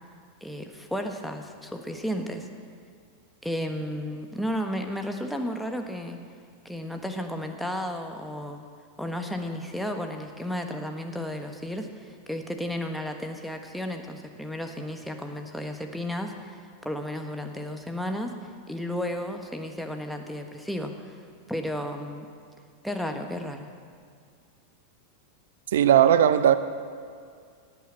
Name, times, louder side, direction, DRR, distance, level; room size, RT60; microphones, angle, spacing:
voice 1, 0.4-2.5 3.4-6.2 6.6-8.6 9.0-16.6 16.8-18.3 18.7-21.2 21.5-22.3 22.8-23.7, equal, ahead, 4 dB, 1.4 m, -33 dB
voice 2, 25.7-26.6, right 10 dB, 60° right, 13 dB, 0.7 m, -18 dB
17.5 x 9.2 x 7.7 m, 2.2 s
figure-of-eight pair, 90°, 0 cm